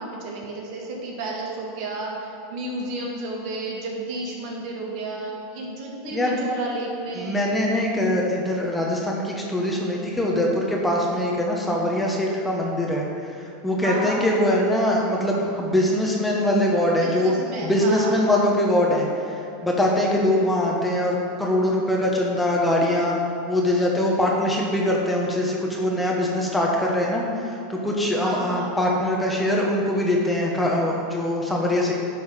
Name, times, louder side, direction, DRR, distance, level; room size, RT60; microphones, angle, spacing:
voice 1, 0.0-7.4 13.8-14.4 17.0-18.2 28.2-28.8, right 2 dB, 55° right, -2 dB, 1.8 m, -32 dB
voice 2, 7.1-17.3 17.6-23.2 23.5-31.9, left 1 dB, 5° left, -2 dB, 1.3 m, -23 dB
10.5 x 3.9 x 5.3 m, 2.8 s
hypercardioid pair, 105°, 0 cm